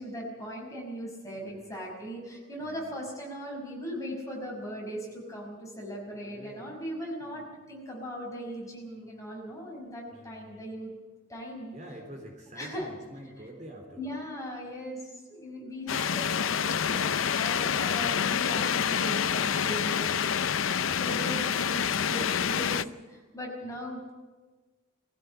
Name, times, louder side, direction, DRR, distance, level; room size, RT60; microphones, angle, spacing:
voice 1, 0.0-10.9 11.3-11.7 12.6-12.9 14.0-20.1 21.0-24.1, equal, 15° left, -1 dB, 5.5 m, -39 dB
voice 2, 1.3-1.8 2.6-3.0 6.2-6.7 7.2-7.6 10.1-10.7 11.7-14.2 23.6-23.8, equal, 35° right, 3 dB, 3.6 m, -48 dB
sound 1, 15.9-22.8, left 7 dB, 80° left, 0.6 m, -27 dB
21.5 x 15.5 x 8.6 m, 1.3 s
head